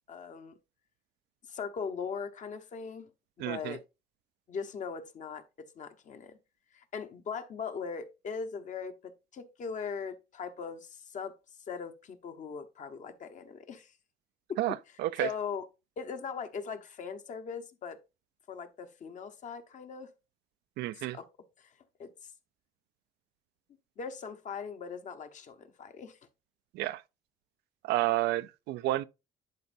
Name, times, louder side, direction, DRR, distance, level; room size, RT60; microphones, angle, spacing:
voice 1, 0.1-0.6 1.5-3.1 3.4-3.8 4.5-6.4 6.7-11.3 11.7-13.9 14.5-14.6 15.2-15.7 16.0-18.0 18.5-20.1 21.1-21.3 21.6-22.3 24.0-26.2, left 6 dB, 45° left, 1.0 m, -40 dB
voice 2, 3.4-3.8 14.6-15.3 20.8-21.2 26.7-27.0 27.8-29.0, right 15 dB, 80° right, 0.4 m, -30 dB
11.0 x 4.4 x 2.6 m
cardioid pair, 110°, 17 cm